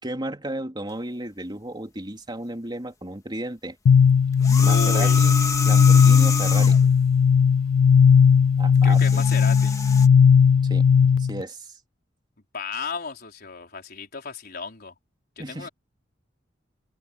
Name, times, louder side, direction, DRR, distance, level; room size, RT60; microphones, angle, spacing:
voice 1, 0.0-3.8 4.6-6.8 8.6-9.2 10.6-10.8 11.2-11.8 15.4-15.7, right 1 dB, 25° right, 3.5 m, -34 dB
sound 1, 3.9-11.4, left 6 dB, 80° left, 0.3 m, -17 dB
sound 2, 4.3-6.9 8.8-10.1, left 3 dB, 20° left, 1.8 m, -29 dB
voice 2, 4.6-5.2 8.8-9.8 12.5-14.9 15.4-15.7, left 4 dB, 55° left, 4.6 m, -34 dB
head